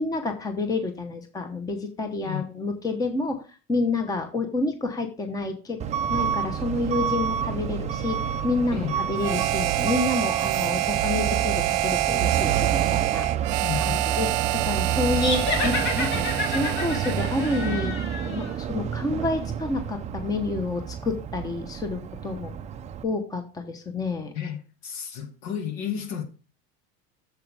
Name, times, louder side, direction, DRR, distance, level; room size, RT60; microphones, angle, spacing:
voice 1, 0.0-3.4 3.7-5.8 6.1-13.3 13.8-14.3 14.6-18.0 18.3-22.6 23.0-24.3, left 3 dB, 10° left, 1.0 m, -29 dB
Truck / Alarm, 5.8-23.0, right 8 dB, 20° right, 0.5 m, -29 dB
voice 2, 8.7-9.1 13.6-14.0 24.3-26.2, left 8 dB, 65° left, 2.1 m, -32 dB
Harmonica, 9.2-17.8, right 18 dB, 70° right, 0.6 m, -27 dB
sound 1, 15.1-18.5, left 4 dB, 40° left, 2.1 m, -30 dB
8.2 x 7.1 x 3.4 m
supercardioid pair, 140°, 30 cm